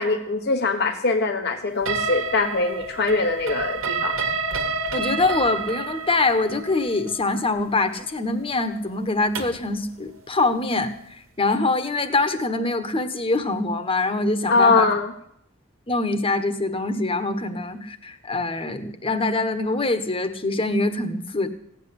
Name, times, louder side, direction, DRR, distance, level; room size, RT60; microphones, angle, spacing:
voice 1, 0.0-4.2 14.5-15.1, left 3 dB, 55° left, 5 dB, 1.2 m, -22 dB
sound 1, 1.9-9.7, right 4 dB, 80° right, 1.5 m, -29 dB
voice 2, 4.9-14.8 15.9-21.5, left 2 dB, 25° left, 9 dB, 1.4 m, -24 dB
16.5 x 8.3 x 9.7 m, 0.71 s
head